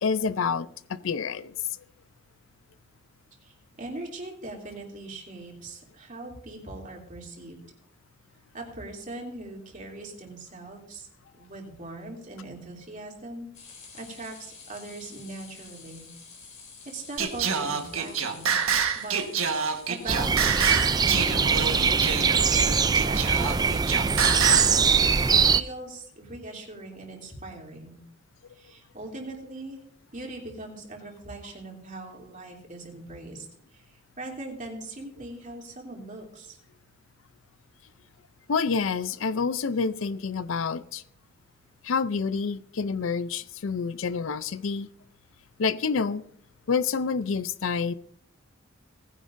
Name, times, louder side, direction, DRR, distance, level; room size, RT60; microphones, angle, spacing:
voice 1, 0.0-0.7 1.0-1.5 38.5-41.0 41.8-44.9 45.6-46.2 46.7-47.9, left 5 dB, 70° left, 15 dB, 0.5 m, -28 dB
voice 2, 3.4-7.6 8.5-11.1 11.3-13.5 14.0-16.1 16.8-18.5 18.9-19.3 19.9-22.0 23.0-24.7 25.5-28.0 28.5-29.8 30.1-33.5 33.7-36.6, right 2 dB, 40° right, 0 dB, 3.0 m, -40 dB
sound 1, 13.5-22.6, left 5 dB, 35° left, 3.3 m, -50 dB
Singing, 17.2-24.8, right 6 dB, 85° right, 1.4 m, -27 dB
sound 2, 20.1-25.6, right 5 dB, 20° right, 0.3 m, -22 dB
19.0 x 10.5 x 2.6 m, 0.64 s
head